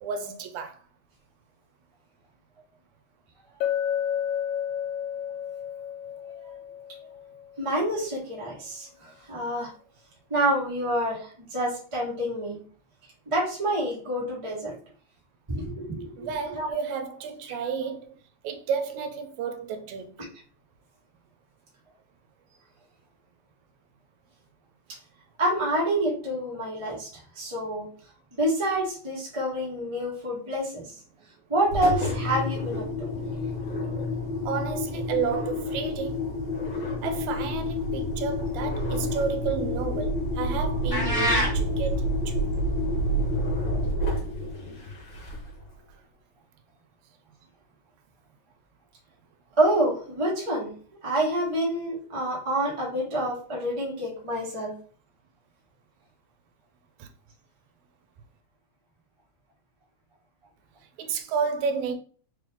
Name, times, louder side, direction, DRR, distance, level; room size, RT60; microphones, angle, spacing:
voice 1, 0.0-0.8 16.2-18.1 18.4-20.3 33.5-36.3 36.7-42.4 57.0-57.1 61.0-61.9, right 6 dB, 75° right, 1.9 m, -32 dB
Chink clink, 3.6-7.6, left 9 dB, 80° left, 2.0 m, -31 dB
voice 2, 7.6-9.7 10.3-12.6 13.3-14.7 15.5-16.7 20.2-20.3 25.4-27.1 27.3-27.9 28.3-30.8 31.5-33.1 49.6-50.7 51.0-54.7, right 1 dB, 30° right, 0.6 m, -27 dB
Engine, 31.7-45.6, left 1 dB, 50° left, 1.7 m, -29 dB
sound 1, 40.9-41.5, equal, 20° left, 1.8 m, -24 dB
4.6 x 3.2 x 3.6 m
omnidirectional pair, 3.5 m